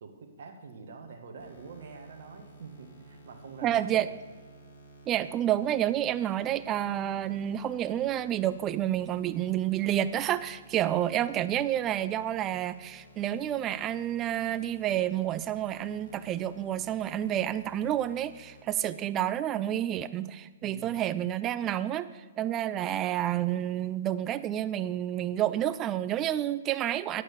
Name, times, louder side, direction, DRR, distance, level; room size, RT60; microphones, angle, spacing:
voice 1, 0.0-4.0 20.6-21.0, right 4 dB, 55° right, 5 dB, 1.5 m, -46 dB
sound 1, 1.4-18.6, equal, 65° left, 2.5 m, -55 dB
voice 2, 3.6-4.1 5.1-27.2, right 11 dB, 25° right, 14 dB, 0.4 m, -29 dB
9.7 x 8.4 x 5.0 m, 1.4 s
figure-of-eight pair, 115°, 0 cm